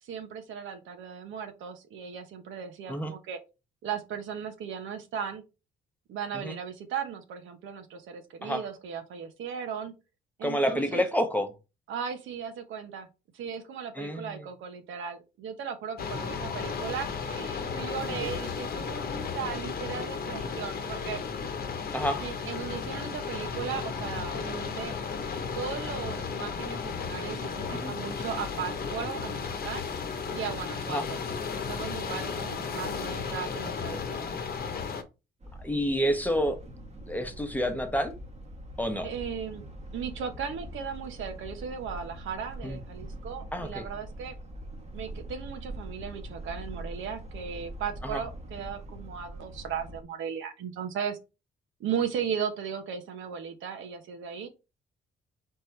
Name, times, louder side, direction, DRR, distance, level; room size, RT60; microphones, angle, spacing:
voice 1, 0.0-3.4 3.8-5.4 6.1-9.9 10.4-11.1 11.9-13.1 13.3-21.2 22.2-24.9 25.5-29.9 30.3-31.2 31.5-34.3 39.0-39.7 39.9-44.3 44.9-51.2 51.8-54.5, right 7 dB, 80° right, 1.0 m, -37 dB
voice 2, 10.4-11.5 14.0-14.5 18.1-18.3 21.9-22.2 27.7-27.9 30.9-31.1 35.6-36.6 37.1-38.2 38.8-39.1 42.6-42.8 43.5-43.8 48.0-48.2, equal, 10° left, 1.0 m, -29 dB
sound 1, 16.0-35.0, left 5 dB, 50° left, 0.9 m, -34 dB
sound 2, 35.4-50.0, right 1 dB, 35° right, 1.2 m, -43 dB
4.3 x 3.7 x 3.2 m
cardioid pair, 90°, 20 cm